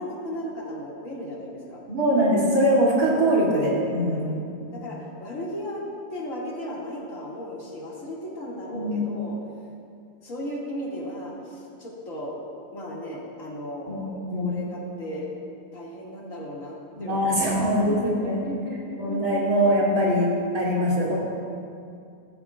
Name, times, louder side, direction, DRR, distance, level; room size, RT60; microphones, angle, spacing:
voice 1, 0.0-1.8 4.1-4.5 4.7-5.8 6.1-9.4 10.2-12.4 12.7-15.3 15.7-17.6 17.9-19.4 20.7-21.2, left 1 dB, 65° left, -5 dB, 2.6 m, -36 dB
voice 2, 1.9-4.3 8.7-9.0 13.9-14.6 17.0-18.4 19.0-20.3 20.5-21.2, equal, 80° right, -6 dB, 3.2 m, -22 dB
15.5 x 14.0 x 2.4 m, 2.4 s
omnidirectional pair, 1.5 m